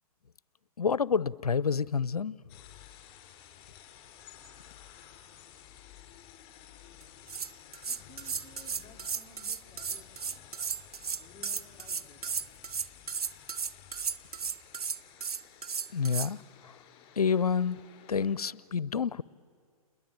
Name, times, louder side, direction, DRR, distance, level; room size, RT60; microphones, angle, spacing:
voice 1, 0.8-2.4 15.9-16.4 17.2-17.8 18.1-19.2, left 6 dB, 90° left, 0.6 m, -28 dB
sound 1, 2.5-18.4, left 10 dB, 30° left, 4.7 m, -54 dB
sound 2, 7.0-16.3, right 6 dB, 85° right, 0.8 m, -35 dB
voice 2, 7.9-10.4 11.2-12.4, left 3 dB, ahead, 3.4 m, -56 dB
29.5 x 21.5 x 9.1 m
hypercardioid pair, 125°, 19 cm